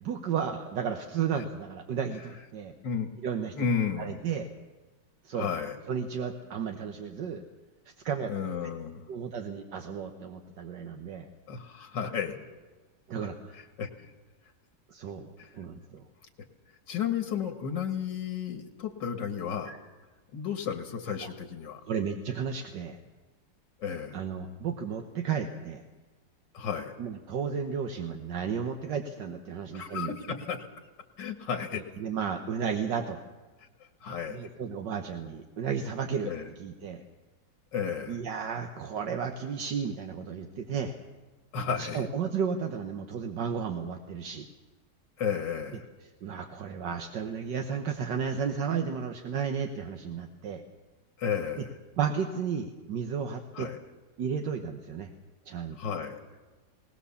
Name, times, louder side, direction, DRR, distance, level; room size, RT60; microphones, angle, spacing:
voice 1, 0.0-2.7 3.2-3.5 4.0-4.5 5.3-5.5 5.9-7.4 8.1-8.3 9.1-11.3 13.1-13.5 14.9-16.0 19.7-19.8 21.2-21.3 21.9-23.0 24.1-25.8 27.0-30.1 31.7-33.2 34.3-36.3 36.6-37.0 38.1-41.0 41.8-44.5 46.2-50.6 52.0-53.7 54.2-55.1 55.5-55.8, right 7 dB, 75° right, 5 dB, 1.8 m, -33 dB
voice 2, 3.6-4.2 5.3-5.8 8.3-9.0 11.5-12.4 13.5-14.1 15.4-15.5 16.9-19.7 20.3-21.8 23.8-24.2 26.5-27.0 29.7-30.7 31.2-31.8 34.0-34.4 36.3-36.5 37.7-38.2 41.5-42.1 45.2-45.8 51.2-51.8 53.5-53.8 55.8-56.2, left 7 dB, 85° left, 6 dB, 2.2 m, -33 dB
20.0 x 19.5 x 7.1 m, 1.3 s
omnidirectional pair, 1.9 m